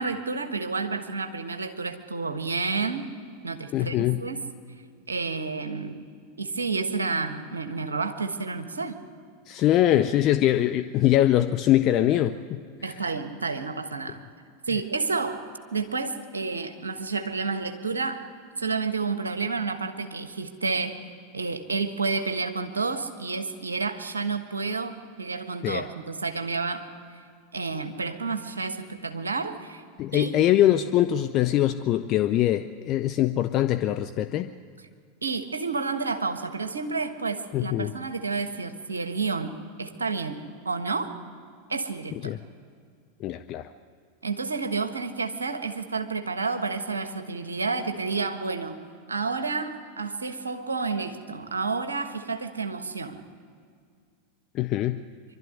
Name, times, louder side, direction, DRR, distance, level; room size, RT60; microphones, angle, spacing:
voice 1, 0.0-3.0 3.4-4.4 5.1-6.0 6.4-8.9 12.8-14.2 14.7-15.4 15.7-18.2 18.6-21.0 21.3-26.9 27.5-29.8 30.1-30.4 35.2-41.2 41.7-42.3 44.2-48.8 49.1-53.2, right 4 dB, 80° right, 8 dB, 1.3 m, -30 dB
voice 2, 3.7-4.2 9.5-13.1 25.6-25.9 30.0-34.5 37.5-37.9 42.2-42.4 43.2-43.7 54.5-55.0, left 13 dB, 40° left, 10 dB, 0.6 m, -23 dB
24.0 x 12.5 x 9.7 m, 2.1 s
figure-of-eight pair, 90°, 0 cm